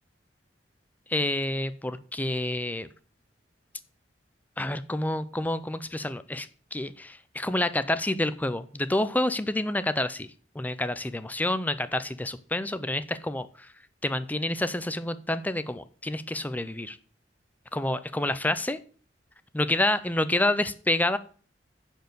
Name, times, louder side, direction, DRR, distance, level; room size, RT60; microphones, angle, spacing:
voice 1, 1.1-2.9 4.6-10.3 10.5-13.7 14.0-17.0 17.7-18.8 19.5-21.2, left 1 dB, 10° left, 13 dB, 0.6 m, -28 dB
10.5 x 4.5 x 7.8 m, 0.43 s
head